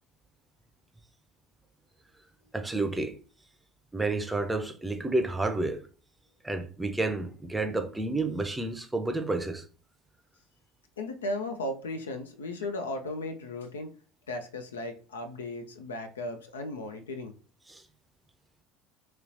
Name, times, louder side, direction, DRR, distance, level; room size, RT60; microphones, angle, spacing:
voice 1, 2.5-3.2 3.9-5.9 6.4-9.6 17.7-17.8, right 2 dB, 10° right, 0.5 m, -30 dB
voice 2, 11.0-13.9 14.3-17.3, left 2 dB, 75° left, 0.4 m, -36 dB
3.0 x 3.0 x 2.5 m
figure-of-eight pair, 65°, 0 cm